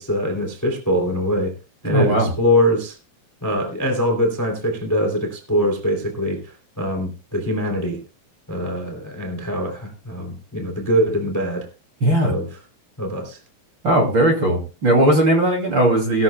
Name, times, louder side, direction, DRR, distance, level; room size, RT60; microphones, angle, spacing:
voice 1, 0.0-1.5 1.8-3.0 3.4-8.0 8.5-11.7 12.2-12.5 13.0-13.4, equal, 5° left, 3 dB, 1.9 m, -23 dB
voice 2, 1.8-2.3 12.0-12.3 13.8-16.2, right 1 dB, 35° right, 1 dB, 2.7 m, -17 dB
19.0 x 13.0 x 2.2 m, 0.31 s
omnidirectional pair, 4.7 m